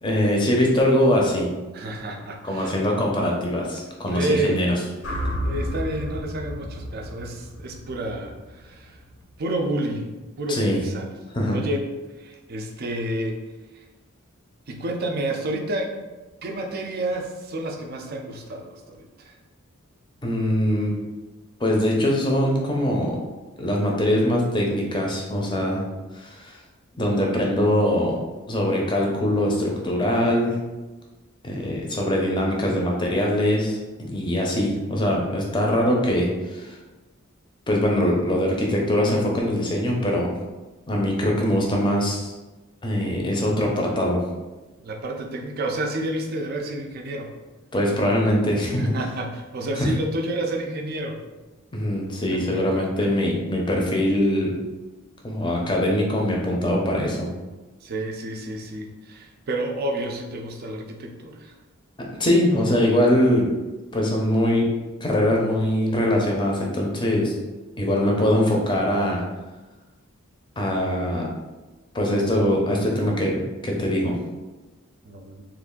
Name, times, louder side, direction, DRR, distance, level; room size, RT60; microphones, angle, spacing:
voice 1, 0.0-1.5 2.4-4.7 10.5-10.8 11.3-11.6 20.2-20.9 21.6-23.2 23.6-25.8 26.1-26.6 26.9-28.2 28.5-30.6 31.4-36.8 37.7-40.4 40.9-42.3 42.8-44.2 47.7-48.9 49.8-49.9 51.7-54.6 55.2-57.3 62.2-63.5 63.9-64.7 65.0-67.4 67.8-69.2 70.6-71.3 71.9-74.2, left 1 dB, 20° left, -1 dB, 0.6 m, -22 dB
voice 2, 1.7-2.7 4.1-4.7 5.4-9.0 9.4-10.1 10.4-11.1 11.5-11.9 12.2-13.4 13.7-13.8 14.7-15.9 16.4-19.4 44.8-47.3 48.8-51.2 52.3-53.1 57.8-61.5 75.0-75.5, right 1 dB, 45° right, 3 dB, 0.4 m, -30 dB
sound 1, 5.0-9.2, equal, 65° left, 0.7 m, -32 dB
3.1 x 2.4 x 3.7 m, 1.2 s
head